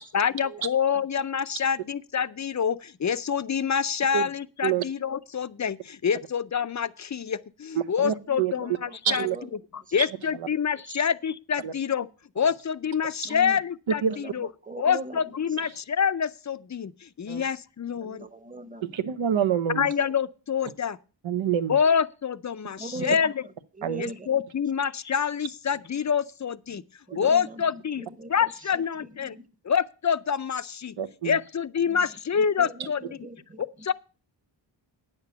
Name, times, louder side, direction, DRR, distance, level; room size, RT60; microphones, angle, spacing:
voice 1, 0.1-9.3 9.9-12.1 12.4-14.0 14.3-14.5 14.8-15.7 16.0-18.3 19.8-21.0 21.7-23.3 24.0-26.8 27.2-29.4 29.6-30.9 31.2-33.0 33.6-33.9, left 7 dB, 40° left, 0.5 m, -26 dB
voice 2, 7.7-8.5 9.0-9.4 10.0-10.1 10.3-10.5 11.6-11.7 13.2-13.3 13.9-14.2 15.6-15.8 17.3-17.4 18.8-19.9 21.2-21.8 23.0-23.1 23.8-24.1 27.2-27.3 31.0-31.4, right 8 dB, 85° right, 0.9 m, -27 dB
voice 3, 8.3-8.7 9.1-9.4 13.2-13.6 14.7-15.2 18.0-18.9 22.8-23.3 23.8-24.3 26.7-26.8 27.1-28.3 29.0-29.5 31.9-32.1 32.4-33.6, right 2 dB, 20° right, 0.9 m, -40 dB
9.5 x 6.8 x 6.8 m
wide cardioid pair, 125°, 46 cm